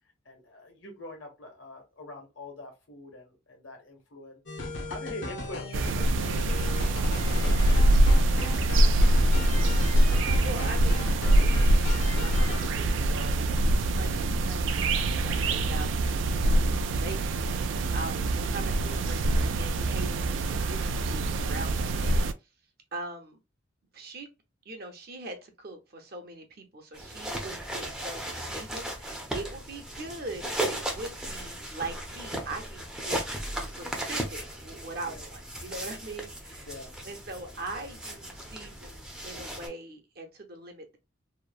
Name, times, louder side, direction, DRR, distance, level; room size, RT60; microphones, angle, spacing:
voice 1, 0.2-9.2 18.0-18.1 35.0-35.2 36.6-36.9, left 2 dB, 85° left, 1.3 m, -45 dB
sound 1, 4.5-12.7, left 1 dB, 65° left, 0.7 m, -37 dB
sound 2, 5.7-22.3, right 1 dB, 75° right, 0.3 m, -24 dB
voice 2, 10.0-13.4 13.9-22.3 22.9-23.4 23.9-24.3 24.7-33.2 33.6-36.7 37.0-41.0, right 2 dB, 50° right, 0.7 m, -42 dB
sound 3, 26.9-39.7, right 1 dB, 5° right, 0.5 m, -36 dB
2.9 x 2.1 x 2.4 m
head